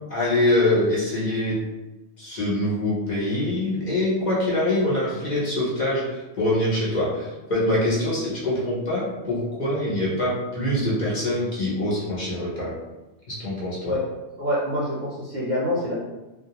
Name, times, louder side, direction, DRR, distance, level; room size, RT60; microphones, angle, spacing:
voice 1, 0.1-1.6 2.2-12.7 13.3-13.9, left 1 dB, 45° left, -8 dB, 0.8 m, -24 dB
voice 2, 14.4-15.9, left 1 dB, 50° right, -7 dB, 0.6 m, -26 dB
2.3 x 2.2 x 2.8 m, 1.1 s
omnidirectional pair, 1.2 m